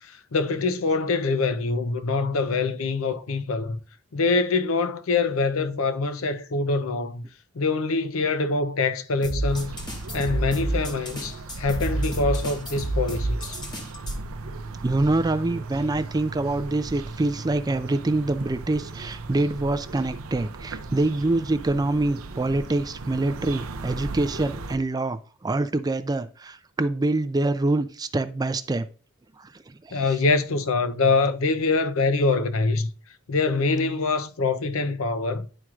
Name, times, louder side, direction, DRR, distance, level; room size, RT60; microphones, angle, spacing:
voice 1, 0.0-3.8 4.1-7.2 7.5-9.7 10.1-13.6 29.9-32.9 33.3-35.5, left 3 dB, 70° left, 0.6 m, -24 dB
sound 1, 9.2-14.2, right 1 dB, 20° left, 1.1 m, -29 dB
sound 2, 9.5-24.8, right 3 dB, 75° right, 0.6 m, -37 dB
voice 2, 14.8-28.9 29.4-30.1, right 2 dB, 20° right, 0.3 m, -25 dB
11.0 x 4.5 x 2.4 m
head